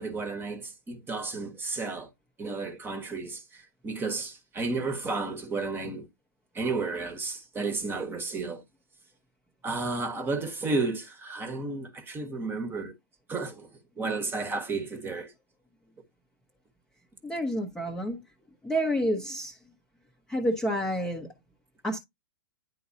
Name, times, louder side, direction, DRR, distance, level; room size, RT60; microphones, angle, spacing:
voice 1, 0.0-2.1 2.4-6.0 6.5-8.6 9.6-12.9 13.3-15.3, right 3 dB, 15° right, 1.2 m, -32 dB
voice 2, 17.2-18.2 18.6-19.5 20.3-21.3 21.8-22.0, equal, 5° left, 0.9 m, -29 dB
10.0 x 3.8 x 2.8 m
figure-of-eight pair, 115°, 13 cm